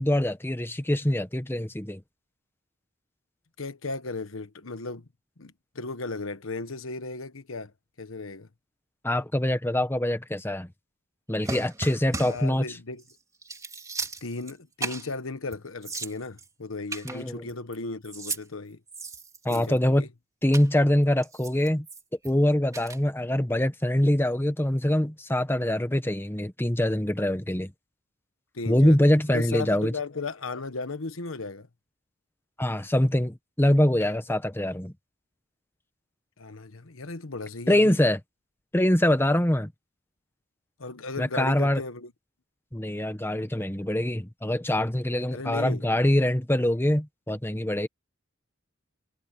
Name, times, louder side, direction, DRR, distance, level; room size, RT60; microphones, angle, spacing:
voice 1, 0.0-2.0 9.0-10.7 11.3-12.6 17.0-17.4 19.4-20.1 20.4-21.8 22.2-27.7 28.7-29.9 32.6-34.9 37.7-38.2 38.7-39.7 41.2-41.8 42.7-47.9, left 1 dB, 10° left, 1.4 m, -24 dB
voice 2, 3.6-5.1 5.4-8.5 12.1-13.0 14.2-18.8 19.5-20.1 28.5-29.0 29.3-31.7 34.0-34.1 36.4-38.0 40.8-42.1 45.3-45.8, left 3 dB, 85° left, 1.2 m, -36 dB
sound 1, 11.4-12.5 13.0-13.1 13.4-14.5 14.8-15.1 15.5-15.6 15.8-16.5 16.9-17.8 18.0-18.4 18.9-19.8 20.5-20.7 21.2-22.3 22.7-23.0, right 3 dB, 15° right, 3.2 m, -36 dB
head